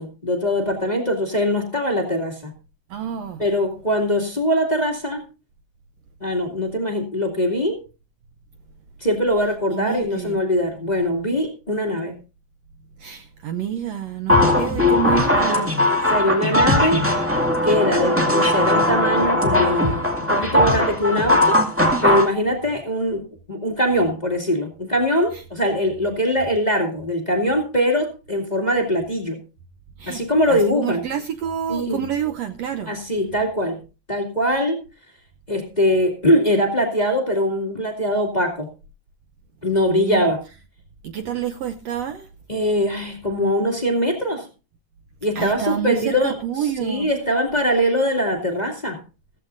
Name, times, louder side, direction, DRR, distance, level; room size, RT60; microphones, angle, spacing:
voice 1, 0.0-2.5 3.4-5.2 6.2-7.8 9.0-12.2 15.5-17.0 17.6-21.6 22.0-29.4 30.1-31.1 31.7-32.0 32.9-33.8 34.1-34.8 35.5-38.7 39.6-40.4 42.5-44.5 45.2-46.3 46.8-49.0, equal, 15° left, 1.9 m, -22 dB
voice 2, 2.9-3.4 9.7-10.4 13.0-15.7 25.3-25.4 30.0-30.2 30.5-32.9 39.9-40.3 41.0-42.3 45.3-47.1, right 9 dB, 70° right, 1.7 m, -28 dB
sound 1, 14.3-22.3, left 1 dB, 5° right, 1.6 m, -19 dB
16.0 x 14.5 x 2.6 m
omnidirectional pair, 3.6 m